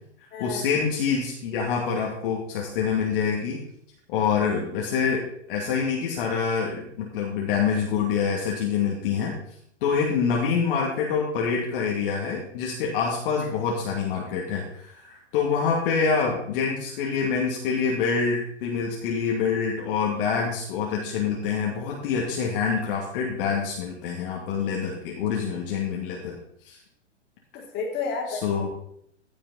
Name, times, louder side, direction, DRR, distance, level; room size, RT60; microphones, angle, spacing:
voice 1, 0.4-3.6 4.1-9.4 9.8-26.4 26.6-26.8 28.3-28.7, left 6 dB, 50° left, -2 dB, 2.5 m, -26 dB
voice 2, 27.5-28.7, left 4 dB, 30° left, -1 dB, 3.4 m, -31 dB
15.0 x 6.9 x 4.2 m, 0.69 s
hypercardioid pair, 125°, 36 cm